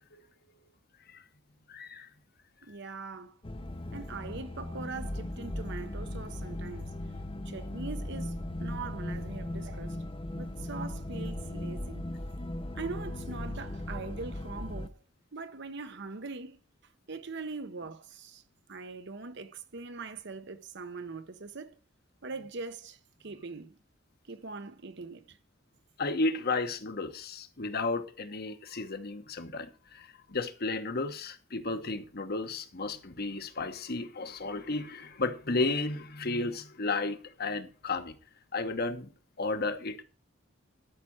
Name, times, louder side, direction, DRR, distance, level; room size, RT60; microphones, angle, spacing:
voice 1, 1.7-2.1 26.0-38.1 38.5-39.1 39.4-40.0, left 3 dB, 50° left, 1.1 m, -33 dB
voice 2, 2.6-3.4 3.9-6.9 7.4-10.0 10.4-12.1 12.7-15.0 15.3-16.6 17.1-18.4 18.7-21.8 22.2-23.8 24.3-25.4, right 4 dB, 60° right, 1.0 m, -42 dB
sound 1, 3.4-14.9, left 1 dB, 25° left, 0.8 m, -38 dB
12.5 x 5.9 x 6.3 m
head